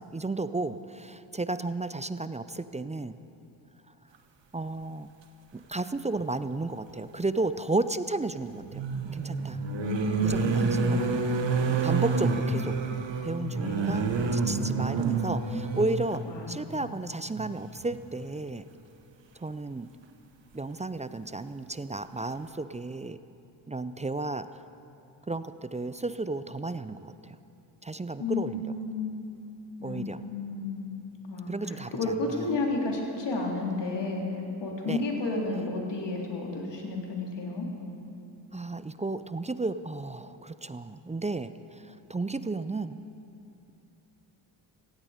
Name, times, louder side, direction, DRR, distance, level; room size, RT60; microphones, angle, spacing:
voice 1, 0.0-3.2 4.5-5.1 5.5-8.8 9.1-9.6 10.2-11.1 11.8-12.8 13.2-18.7 19.4-19.9 20.5-23.2 23.7-24.5 25.3-27.4 27.8-28.7 29.8-30.2 31.5-32.5 34.8-35.0 35.5-35.7 38.5-43.0, right 2 dB, 15° right, 13 dB, 0.5 m, -33 dB
sound 1, 6.2-6.3 8.5-16.2 17.3-17.5 17.8-18.0, right 4 dB, 60° right, 1.5 m, -28 dB
voice 2, 9.7-10.9 13.6-14.1 16.3-16.5 28.2-29.2 29.8-30.0 30.3-30.8 31.2-34.3 34.6-37.7, left 3 dB, 55° left, -1 dB, 3.5 m, -32 dB
16.5 x 16.0 x 5.1 m, 2.7 s
cardioid pair, 60°, 49 cm